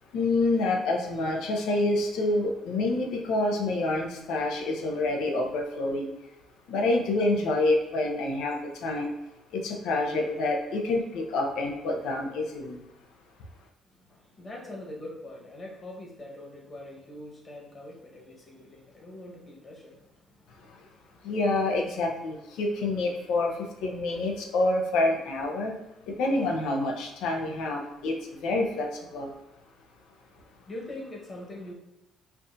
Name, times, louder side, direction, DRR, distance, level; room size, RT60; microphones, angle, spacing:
voice 1, 0.1-6.1 6.7-9.1 9.5-12.8 21.2-23.5 23.8-25.7 26.2-28.1 28.4-28.9 29.1-29.3, left 2 dB, 85° left, 1 dB, 0.6 m, -27 dB
voice 2, 13.8-21.3 30.3-31.7, left 1 dB, 35° left, -1 dB, 1.1 m, -43 dB
4.5 x 2.5 x 2.6 m, 0.89 s
cardioid pair, 80°, 0 cm